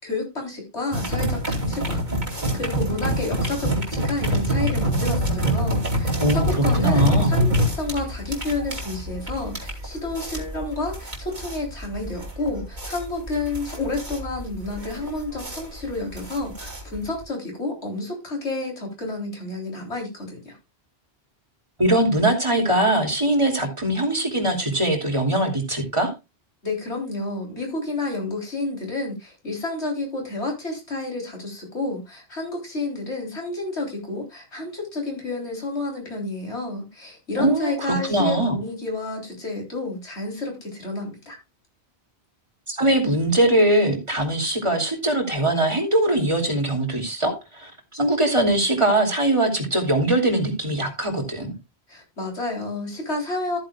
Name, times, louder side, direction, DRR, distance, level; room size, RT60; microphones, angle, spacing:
voice 1, 0.0-20.6 26.6-41.4 51.9-53.6, left 2 dB, 85° left, 1 dB, 4.1 m, -30 dB
sound 1, 0.9-17.2, equal, 45° right, 3.0 m, -25 dB
voice 2, 6.1-7.3 21.8-26.1 37.4-38.5 42.7-51.5, right 1 dB, 25° right, 3 dB, 2.8 m, -21 dB
14.0 x 9.1 x 2.4 m, 0.25 s
omnidirectional pair, 1.1 m